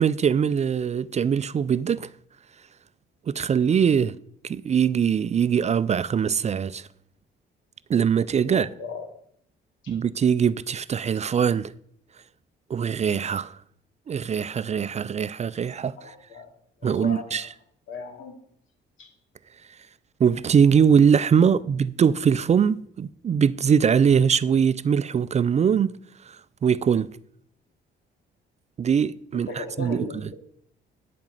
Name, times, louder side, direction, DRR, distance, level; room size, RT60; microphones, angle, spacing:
voice 1, 0.0-2.1 3.3-4.1 4.4-6.9 7.9-8.7 9.9-11.7 12.7-13.5 14.1-15.9 16.8-17.5 20.2-26.0 26.3-26.4 26.6-27.1 28.8-30.1, right 7 dB, 35° right, 0.4 m, -22 dB
voice 2, 8.4-9.1 9.8-10.0 16.0-16.5 16.8-17.5 17.9-18.4 19.0-19.1 21.4-21.6 29.3-30.3, left 3 dB, 80° left, 2.4 m, -37 dB
10.5 x 5.1 x 7.8 m
cardioid pair, 90°, 20 cm